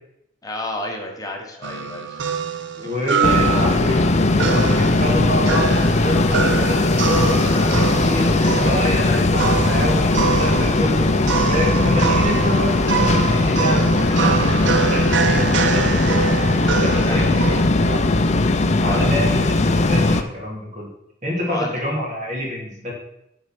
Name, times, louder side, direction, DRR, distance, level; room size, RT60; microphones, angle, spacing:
voice 1, 0.4-2.2 2.8-3.8 17.0-17.3 18.8-19.3 21.5-21.9, left 1 dB, 20° left, 1 dB, 1.4 m, -31 dB
sound 1, 1.6-17.6, right 6 dB, 65° right, 0.6 m, -25 dB
voice 2, 2.8-4.0 4.4-11.1 11.5-16.3 16.8-18.0 18.8-20.9 21.2-22.9, left 1 dB, 40° right, -3 dB, 2.9 m, -27 dB
sound 2, 3.2-20.2, left 2 dB, 35° left, 0.6 m, -18 dB
9.7 x 4.5 x 6.1 m, 0.80 s
head